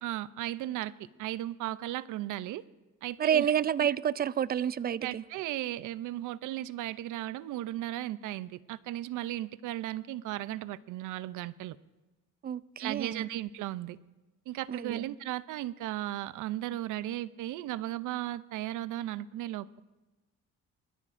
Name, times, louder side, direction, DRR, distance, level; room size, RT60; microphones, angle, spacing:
voice 1, 0.0-2.6 3.0-3.5 4.6-11.8 12.8-14.0 14.5-19.8, right 14 dB, 85° right, 0.5 m, -36 dB
voice 2, 3.2-5.2 12.4-13.2 14.7-15.0, right 9 dB, 30° right, 0.4 m, -29 dB
22.0 x 13.5 x 2.6 m
cardioid pair, 90°, 30 cm